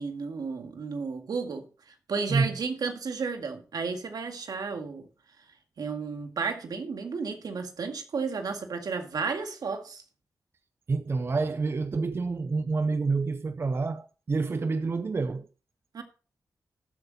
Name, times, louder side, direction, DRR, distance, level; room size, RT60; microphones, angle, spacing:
voice 1, 0.0-1.7 2.1-5.1 5.8-10.0 15.9-16.0, right 5 dB, 70° right, 1.9 m, -33 dB
voice 2, 10.9-15.5, right 4 dB, 35° right, 0.5 m, -28 dB
13.0 x 8.1 x 4.1 m
wide cardioid pair, 130°, 7 cm